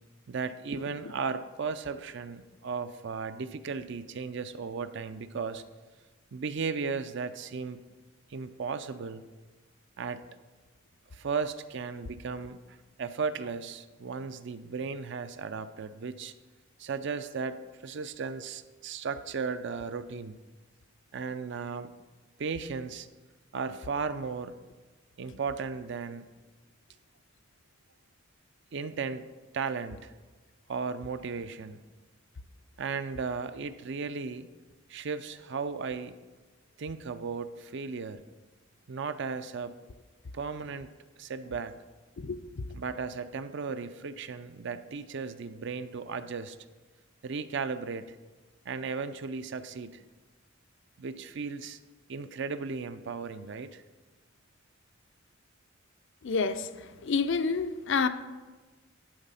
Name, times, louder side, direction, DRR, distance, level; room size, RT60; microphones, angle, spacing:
voice 1, 0.3-5.6 6.3-7.8 8.3-9.2 10.0-10.2 11.1-16.3 16.8-20.4 21.1-21.9 22.4-23.1 23.5-24.5 25.2-26.3 28.7-29.3 29.5-30.1 30.7-31.8 32.8-34.5 34.9-36.1 36.8-38.2 38.9-39.7 40.3-40.9 41.2-41.7 42.7-46.6 47.2-48.2 48.7-50.0 51.0-51.8 52.1-53.8, right 5 dB, 60° right, 11 dB, 0.5 m, -35 dB
voice 2, 56.2-58.1, left 5 dB, 65° left, 11 dB, 0.5 m, -28 dB
11.0 x 4.1 x 5.6 m, 1.3 s
head